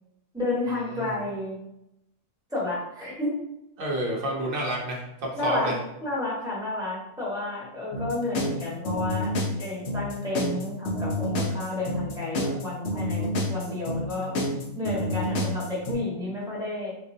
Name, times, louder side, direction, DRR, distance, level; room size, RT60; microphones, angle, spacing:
voice 1, 0.3-1.6 2.5-3.3 5.4-5.7 6.0-14.3 14.7-16.9, left 2 dB, 5° right, -7 dB, 1.2 m, -31 dB
voice 2, 3.8-5.7, right 1 dB, 50° right, -3 dB, 0.8 m, -29 dB
sound 1, 7.9-15.9, left 1 dB, 60° left, 0.9 m, -28 dB
4.0 x 2.5 x 2.7 m, 0.84 s
omnidirectional pair, 1.5 m